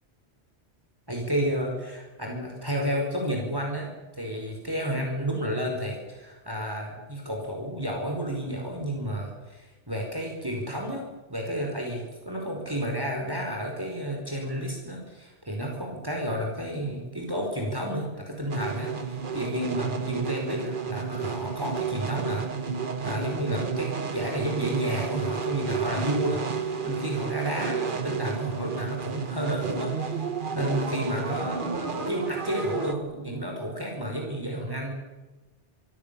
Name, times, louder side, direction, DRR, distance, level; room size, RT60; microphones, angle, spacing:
voice 1, 1.1-3.9 4.2-11.0 11.3-22.5 23.0-30.3 30.5-34.9, equal, 20° right, 1 dB, 5.2 m, -31 dB
sound 1, 18.5-32.9, right 6 dB, 50° right, 1.5 m, -31 dB
26.5 x 24.0 x 7.1 m, 1.1 s
omnidirectional pair, 1.1 m